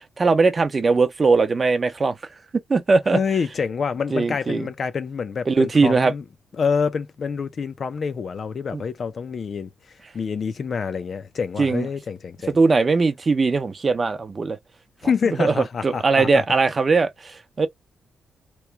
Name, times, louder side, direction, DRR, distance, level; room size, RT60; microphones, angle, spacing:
voice 1, 0.2-2.2 2.7-3.2 4.1-4.7 5.5-6.1 8.7-8.8 11.6-11.9 12.5-14.6 15.4-15.5 15.8-17.7, right 4 dB, 35° right, 0.6 m, -20 dB
voice 2, 3.1-6.2 6.6-9.7 10.1-12.6 15.0-16.4, left 6 dB, 50° left, 0.5 m, -27 dB
3.0 x 2.2 x 3.3 m
cardioid pair, 100°, 0 cm